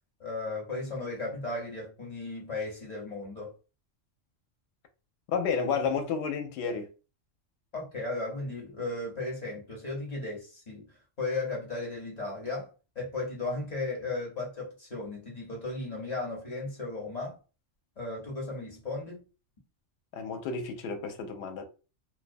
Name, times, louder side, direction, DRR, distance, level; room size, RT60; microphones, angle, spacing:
voice 1, 0.2-3.5 7.7-10.9 11.2-17.4 18.0-19.2, left 2 dB, 40° left, 0.7 m, -35 dB
voice 2, 5.3-6.9 20.1-21.6, left 5 dB, 70° left, 0.8 m, -31 dB
2.2 x 2.2 x 2.5 m
omnidirectional pair, 1.3 m